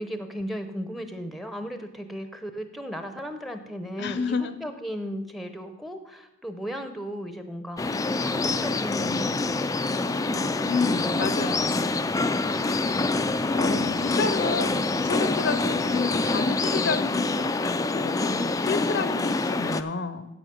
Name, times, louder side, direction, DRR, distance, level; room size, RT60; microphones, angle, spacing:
voice 1, 0.0-9.6 10.0-11.3 12.2-12.7, equal, ahead, 7 dB, 0.7 m, -36 dB
voice 2, 4.0-4.6 10.6-11.8 13.5-20.3, left 4 dB, 55° left, 12 dB, 0.6 m, -30 dB
sound 1, 7.8-19.8, left 3 dB, 15° left, 0.3 m, -26 dB
10.0 x 8.1 x 5.1 m, 0.96 s
head